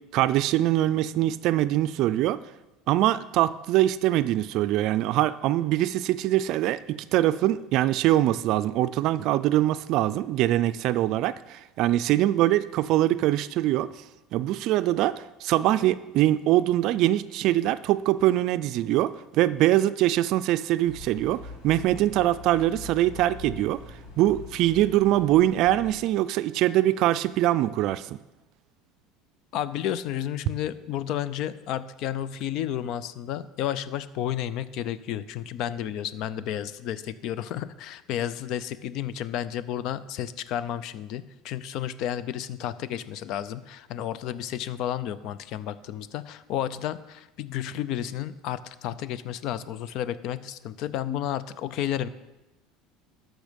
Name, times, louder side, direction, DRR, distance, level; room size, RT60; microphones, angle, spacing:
voice 1, 0.1-2.4 2.9-13.9 14.3-23.8 24.2-28.1, right 14 dB, 60° right, 14 dB, 0.4 m, -23 dB
sound 1, 20.9-25.9, left 3 dB, 75° left, 2.5 m, -43 dB
voice 2, 29.5-52.1, left 11 dB, 60° left, 15 dB, 0.5 m, -32 dB
13.0 x 6.3 x 5.2 m, 1.0 s
supercardioid pair, 125°, 0 cm